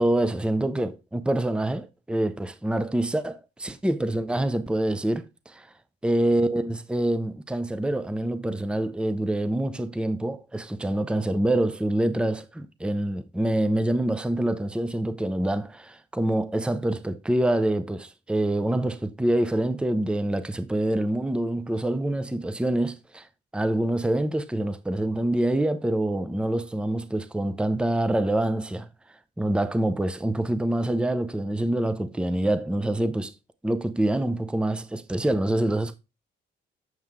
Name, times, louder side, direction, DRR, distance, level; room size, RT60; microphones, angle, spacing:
voice 1, 0.0-5.6 6.0-23.3 23.5-28.9 29.4-33.3 33.6-36.0, right 1 dB, 5° right, 0.7 m, -26 dB
7.9 x 5.5 x 3.6 m
cardioid pair, 90°, 20 cm